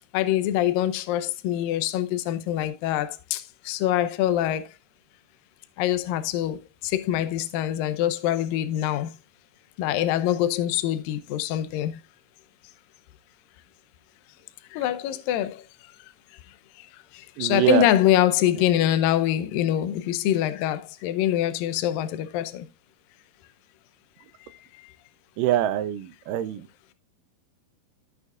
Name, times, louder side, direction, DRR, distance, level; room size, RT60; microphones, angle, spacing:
voice 1, 0.1-4.7 5.8-9.1 9.8-12.0 14.7-15.6 17.1-22.7, left 12 dB, 80° left, 2.3 m, -24 dB
voice 2, 17.4-17.9 25.4-26.7, right 12 dB, 80° right, 2.0 m, -24 dB
15.0 x 6.3 x 2.4 m
omnidirectional pair, 4.4 m